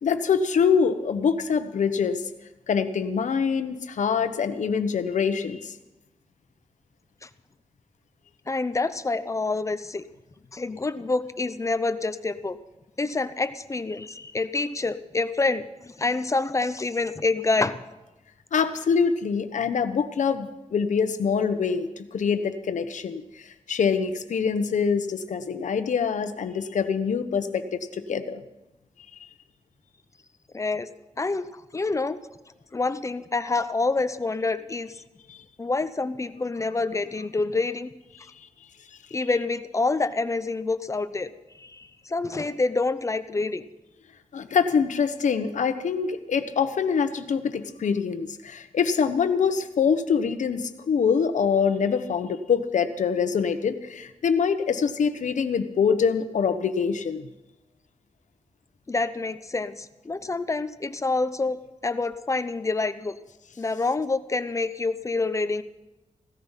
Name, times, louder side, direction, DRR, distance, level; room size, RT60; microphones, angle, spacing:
voice 1, 0.0-2.2 2.7-5.7 18.5-28.4 35.3-35.4 38.4-38.5 44.3-57.3, left 6 dB, 80° left, 10 dB, 1.1 m, -25 dB
voice 2, 8.5-10.0 10.5-12.6 13.0-17.8 30.5-30.9 31.2-31.5 31.7-32.2 32.7-35.0 35.6-37.9 39.1-41.3 41.6-43.6 58.9-61.6 61.8-63.2 63.6-65.6, left 3 dB, 25° left, 12 dB, 0.7 m, -27 dB
16.5 x 13.5 x 5.7 m, 1.0 s
wide cardioid pair, 140°, 12 cm